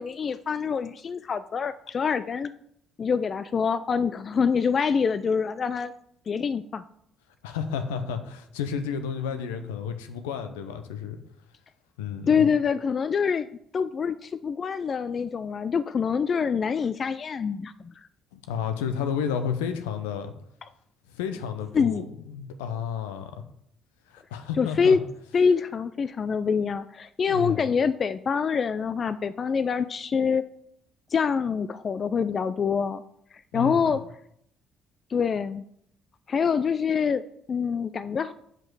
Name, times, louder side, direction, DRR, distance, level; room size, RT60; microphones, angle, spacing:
voice 1, 0.0-2.5 3.0-5.9 6.3-6.8 12.3-13.5 13.7-17.9 21.7-22.0 24.6-25.0 25.3-30.4 31.1-33.0 33.5-34.0 35.1-35.6 36.3-38.3, left 6 dB, 45° left, 13 dB, 0.3 m, -25 dB
voice 2, 7.4-11.2 12.0-12.5 18.3-20.3 21.1-23.4 24.1-25.0 27.3-27.6 33.5-34.0, left 7 dB, 80° left, 8 dB, 0.7 m, -31 dB
7.4 x 5.2 x 4.8 m, 0.71 s
hypercardioid pair, 50°, 0 cm